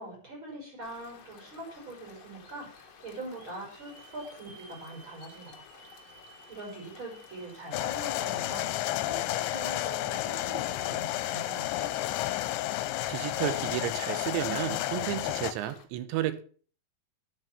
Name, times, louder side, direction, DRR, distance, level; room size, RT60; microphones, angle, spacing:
voice 1, 0.0-5.8 6.5-11.9, right 1 dB, 25° right, 5.9 m, -43 dB
sound 1, 0.8-15.8, left 5 dB, 50° left, 2.1 m, -54 dB
Hiss / Alarm, 3.3-13.7, right 4 dB, 40° right, 5.9 m, -57 dB
sound 2, 7.7-15.5, left 16 dB, 85° left, 2.9 m, -31 dB
voice 2, 13.1-16.4, right 13 dB, 80° right, 3.3 m, -32 dB
10.5 x 8.0 x 7.3 m
omnidirectional pair, 5.2 m